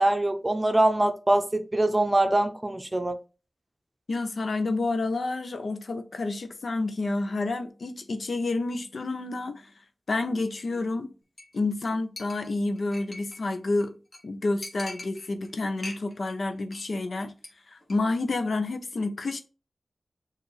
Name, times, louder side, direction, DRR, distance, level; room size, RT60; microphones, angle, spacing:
voice 1, 0.0-3.2, right 1 dB, 20° right, 0.6 m, -23 dB
voice 2, 4.1-9.7 10.1-11.1 11.5-13.9 14.2-17.3 17.7-19.4, left 2 dB, 75° left, 0.6 m, -29 dB
Chink clink, 11.4-11.6 11.8-11.9 12.2-13.5 13.8-13.9 14.1-14.2 14.6-15.5 15.8-16.3 16.6-16.9 17.2-17.5 17.8-18.0, left 2 dB, 45° left, 1.1 m, -42 dB
6.6 x 2.5 x 3.2 m
wide cardioid pair, 90°, 0 cm